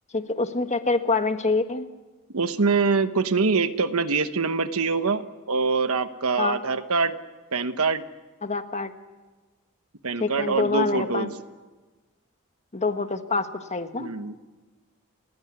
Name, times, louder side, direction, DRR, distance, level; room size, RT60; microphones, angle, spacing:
voice 1, 0.1-1.9 6.4-6.6 8.4-8.9 10.2-11.3 12.7-14.1, left 3 dB, 30° left, 8 dB, 1.4 m, -26 dB
voice 2, 2.3-7.1 7.5-8.0 10.0-11.3 14.0-14.4, right 4 dB, 75° right, 10 dB, 1.1 m, -24 dB
30.0 x 15.5 x 9.7 m, 1.2 s
head